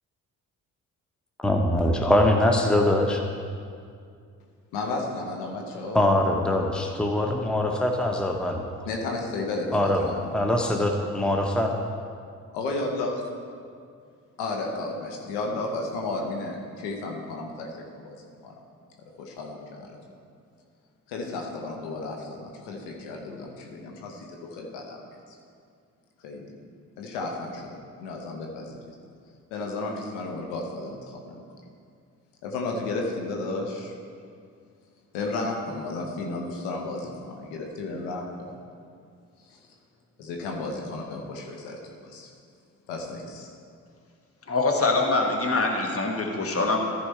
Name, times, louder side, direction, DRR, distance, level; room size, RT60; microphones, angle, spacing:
voice 1, 1.4-3.2 5.9-8.7 9.7-11.8, left 1 dB, ahead, 2 dB, 0.9 m, -23 dB
voice 2, 4.7-6.1 8.8-10.3 12.5-13.2 14.4-18.5 19.2-20.0 21.1-25.0 25.3-25.4 26.2-26.4 27.0-28.8 29.5-31.4 32.4-33.9 35.1-38.5 39.5-39.6 40.2-42.3 42.9-43.5, left 2 dB, 70° left, 0 dB, 1.2 m, -33 dB
voice 3, 44.5-46.8, left 3 dB, 30° left, 2 dB, 1.5 m, -24 dB
14.0 x 4.8 x 4.4 m, 2.2 s
figure-of-eight pair, 40°, 43 cm